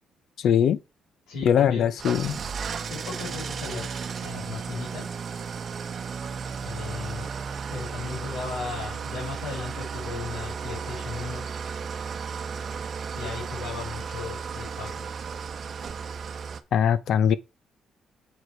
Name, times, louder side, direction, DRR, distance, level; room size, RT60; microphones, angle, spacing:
voice 1, 0.4-0.8 1.4-2.4 16.7-17.4, left 8 dB, 70° left, 0.6 m, -21 dB
voice 2, 1.3-1.9 2.9-5.2 6.6-7.3 7.7-11.4 13.1-15.1, left 4 dB, 90° left, 4.5 m, -36 dB
Engine starting / Idling, 2.0-16.6, right 6 dB, 50° right, 0.9 m, -34 dB
7.8 x 5.0 x 4.5 m
cardioid pair, 90°, 0 cm